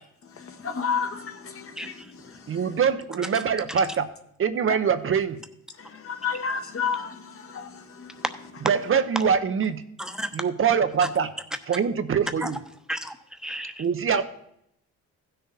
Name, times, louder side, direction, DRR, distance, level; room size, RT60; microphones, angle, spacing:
voice 1, 0.3-2.7 4.7-4.8 5.8-8.2, left 6 dB, 45° left, 1.3 m, -32 dB
voice 2, 1.8-2.1 8.2-8.3 10.0-10.3 12.4-12.5 12.9-13.8, equal, ahead, 1.0 m, -33 dB
voice 3, 2.5-4.1 4.4-5.4 8.6-9.8 10.3-11.3 11.7-12.6 13.8-14.2, right 7 dB, 45° right, 0.8 m, -23 dB
15.5 x 6.6 x 4.0 m
cardioid pair, 90°, 30 cm